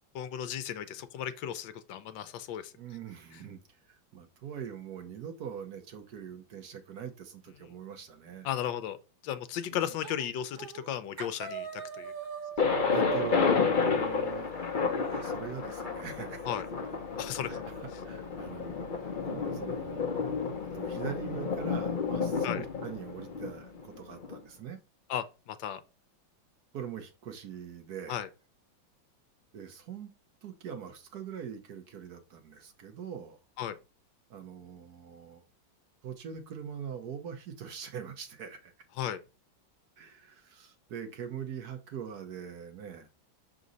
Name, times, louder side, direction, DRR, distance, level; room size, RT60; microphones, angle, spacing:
voice 1, 0.1-2.7 8.4-9.0 9.2-12.1 16.5-16.7 17.2-17.6 22.4-22.6 25.1-25.8 28.1-28.3 33.6-33.8 39.0-39.2, left 10 dB, 80° left, 1.3 m, -35 dB
voice 2, 2.7-3.6 3.8-8.5 9.7-9.8 12.9-14.5 15.1-16.5 17.5-18.7 19.0-20.1 20.7-24.8 26.7-28.2 29.5-30.1 30.4-33.4 34.3-35.4 36.0-38.7 40.0-43.1, right 8 dB, 60° right, 1.2 m, -42 dB
sound 1, 10.0-10.3 10.6-10.9 11.2-15.2, right 9 dB, 90° right, 1.7 m, -41 dB
Thunder, 12.6-24.4, left 5 dB, 40° left, 0.7 m, -31 dB
6.2 x 3.8 x 4.0 m
omnidirectional pair, 2.1 m